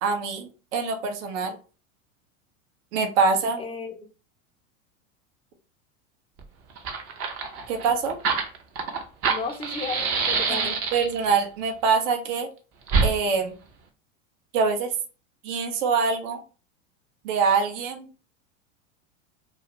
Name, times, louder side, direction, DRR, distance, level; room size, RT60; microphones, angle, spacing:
voice 1, 0.0-1.6 2.9-3.6 7.7-8.2 10.5-12.5 13.0-13.5 14.5-14.9 15.4-16.4 17.2-18.1, right 5 dB, 65° right, 5 dB, 0.8 m, -24 dB
voice 2, 3.6-4.1 9.3-10.8, left 4 dB, 15° left, 4 dB, 0.4 m, -34 dB
Fire, 6.4-6.5 6.7-11.3 12.9-13.1, right 5 dB, 35° right, 0.6 m, -26 dB
2.5 x 2.4 x 2.9 m, 0.35 s
hypercardioid pair, 105°, 39 cm